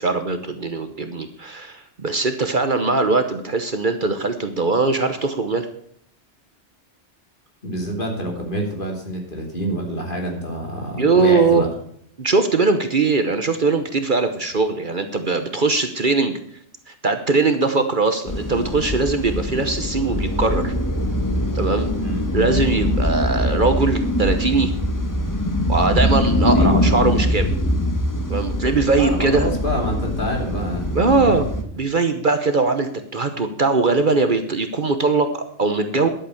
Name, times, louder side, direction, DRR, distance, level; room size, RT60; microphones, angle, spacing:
voice 1, 0.0-5.7 11.0-11.6 12.2-16.4 16.9-20.7 21.5-21.9 22.3-24.7 25.7-27.5 28.3-29.5 30.9-31.5 31.8-36.1, right 3 dB, 45° right, 8 dB, 1.2 m, -20 dB
voice 2, 7.6-11.7 21.9-22.3 26.5-26.9 28.9-30.9 31.1-31.4, equal, 45° left, 1 dB, 3.2 m, -27 dB
sound 1, 18.3-31.6, left 1 dB, 15° left, 1.2 m, -22 dB
11.5 x 8.1 x 7.0 m, 0.65 s
omnidirectional pair, 1.2 m